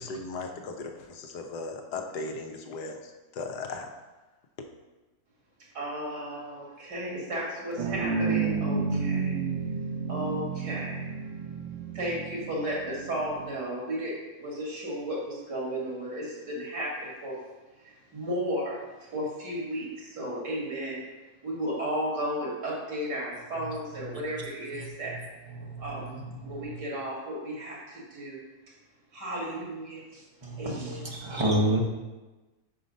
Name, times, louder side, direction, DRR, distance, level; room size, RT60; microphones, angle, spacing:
voice 1, 0.0-3.9, left 3 dB, 75° left, 4 dB, 1.3 m, -37 dB
voice 2, 5.7-9.3 10.1-11.0 11.9-14.1 14.4-17.3 18.1-18.8 19.1-21.1 21.4-25.1 25.8-26.2 26.4-28.4 29.1-30.2 30.6-31.6, equal, 90° right, -4 dB, 2.6 m, -34 dB
sound 1, 7.8-13.5, right 5 dB, 60° right, 0.8 m, -31 dB
voice 3, 24.0-24.4 24.7-26.8 30.4-30.7 31.0-31.8, right 1 dB, 30° right, -2 dB, 0.6 m, -31 dB
5.5 x 4.9 x 5.1 m, 1.2 s
omnidirectional pair, 1.8 m